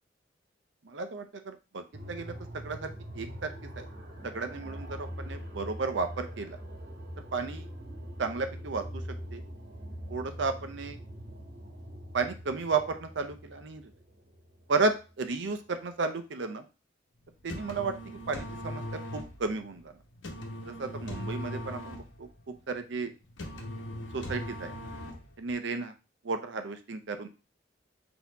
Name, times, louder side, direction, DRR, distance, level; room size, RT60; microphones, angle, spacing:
voice 1, 0.8-2.3 2.6-3.9 4.2-6.6 7.3-7.7 8.2-9.0 9.3-9.4 10.1-11.0 12.1-13.8 14.7-16.6 17.4-17.9 18.3-19.9 20.6-22.3 22.7-23.1 24.1-24.7 25.4-25.9 26.2-27.3, right 4 dB, 75° right, 8 dB, 0.6 m, -33 dB
sound 1, 1.9-15.6, equal, 55° right, 1.3 m, -43 dB
sound 2, 17.3-25.5, equal, 85° left, 0.9 m, -40 dB
4.2 x 2.8 x 4.0 m, 0.31 s
head